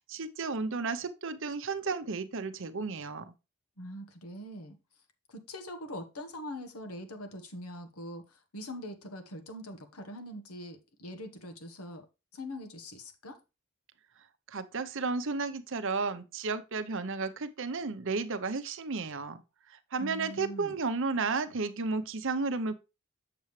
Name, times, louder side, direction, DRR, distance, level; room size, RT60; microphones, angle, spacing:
voice 1, 0.1-3.3 14.5-19.4 19.7-22.7, right 4 dB, 60° right, 0.8 m, -33 dB
voice 2, 3.8-4.8 5.3-12.1 12.3-13.4 20.0-20.8, equal, 85° left, 1.3 m, -43 dB
7.5 x 7.1 x 3.2 m
head